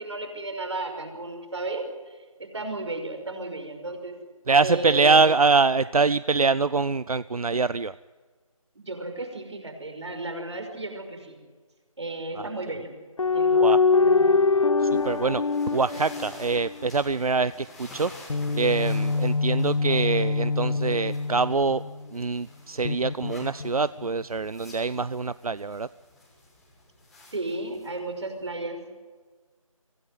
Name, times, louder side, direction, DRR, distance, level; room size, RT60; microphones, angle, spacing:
voice 1, 0.0-4.2 4.6-5.2 8.8-11.4 12.0-12.9 13.3-14.5 27.3-28.8, right 2 dB, 50° right, 5 dB, 5.8 m, -34 dB
voice 2, 4.5-7.9 12.4-12.5 13.6-13.8 14.8-15.4 15.7-18.1 18.5-21.8 22.1-25.9, right 4 dB, 85° right, 17 dB, 0.6 m, -24 dB
sound 1, 13.2-16.9 18.3-22.0 22.8-24.1, left 4 dB, 60° left, 0.7 m, -24 dB
sound 2, 14.9-28.5, left 2 dB, ahead, 1.5 m, -50 dB
24.5 x 17.0 x 9.4 m, 1.4 s
figure-of-eight pair, 170°, 18 cm